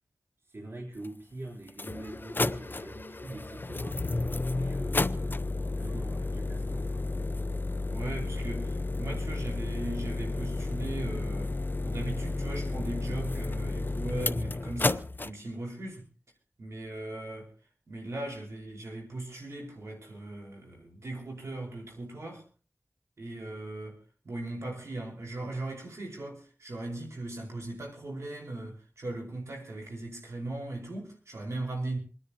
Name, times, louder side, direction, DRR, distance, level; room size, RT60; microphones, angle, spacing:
voice 1, 0.4-4.2 4.5-5.4 5.7-7.2, right 2 dB, 65° right, 3.6 m, -44 dB
sound 1, 1.0-1.1 1.7-15.3, left 2 dB, 45° left, 0.7 m, -32 dB
voice 2, 7.9-11.5 11.8-16.1 16.6-17.5 17.9-22.4 23.2-24.0 24.2-32.0, right 2 dB, 85° right, 4.8 m, -38 dB
28.0 x 10.0 x 2.9 m
wide cardioid pair, 55°, 5 cm